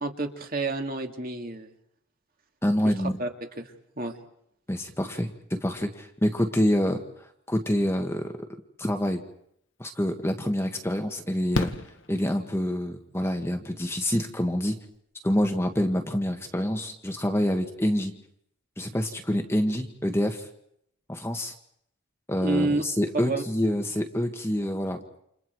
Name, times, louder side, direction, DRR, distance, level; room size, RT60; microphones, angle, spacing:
voice 1, 0.0-1.7 2.8-2.9 3.2-3.3 3.6-4.1 22.4-22.8 23.1-23.4, right 2 dB, 40° right, 3 dB, 2.6 m, -29 dB
voice 2, 2.6-3.2 4.7-8.3 8.8-9.2 9.8-11.7 12.1-14.8 15.2-18.2 18.8-20.5 21.1-21.5 22.3-25.0, equal, 10° left, 5 dB, 1.5 m, -27 dB
Fireworks, 9.9-10.0 11.5-12.9 14.6-14.7 14.9-15.0, left 2 dB, 60° left, 1.6 m, -31 dB
29.5 x 28.0 x 4.7 m, 0.73 s
head